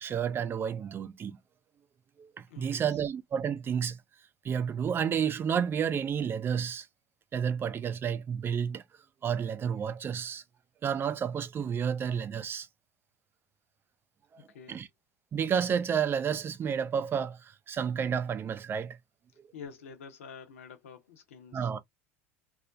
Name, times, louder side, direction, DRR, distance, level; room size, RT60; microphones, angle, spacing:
voice 1, 0.0-1.4 2.2-4.0 4.4-6.9 7.3-8.8 9.2-10.4 10.8-12.7 14.3-14.4 14.7-14.9 15.3-19.0 21.5-21.8, right 7 dB, 30° right, 0.4 m, -31 dB
voice 2, 2.5-3.0 14.5-14.8 19.5-21.8, left 6 dB, 80° left, 0.7 m, -48 dB
2.4 x 2.1 x 2.6 m
hypercardioid pair, 80°, 7 cm